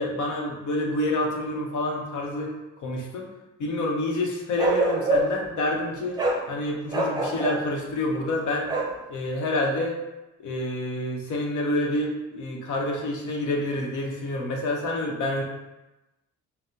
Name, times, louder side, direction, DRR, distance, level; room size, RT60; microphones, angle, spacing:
voice 1, 0.0-2.5 2.8-3.3 3.6-6.2 6.5-8.7 9.1-10.0 10.4-15.4, left 1 dB, 75° left, 1 dB, 0.8 m, -28 dB
Bark, 4.6-5.5 6.2-6.4 6.9-7.6 8.7-9.0, right 1 dB, 15° right, 0.6 m, -25 dB
5.5 x 2.0 x 2.8 m, 1.0 s
cardioid pair, 90°, 30 cm